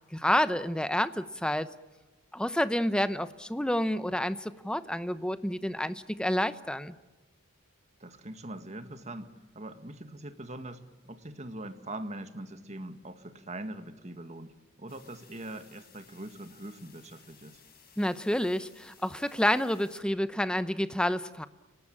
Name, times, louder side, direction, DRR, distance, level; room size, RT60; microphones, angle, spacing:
voice 1, 0.1-1.7 2.3-6.9 18.0-21.5, left 1 dB, 5° left, 13 dB, 0.8 m, -29 dB
voice 2, 8.0-17.6, right 1 dB, 35° right, 9 dB, 1.8 m, -42 dB
sound 1, 14.9-20.0, left 6 dB, 45° left, 6.1 m, -58 dB
30.0 x 19.0 x 8.8 m, 1.2 s
head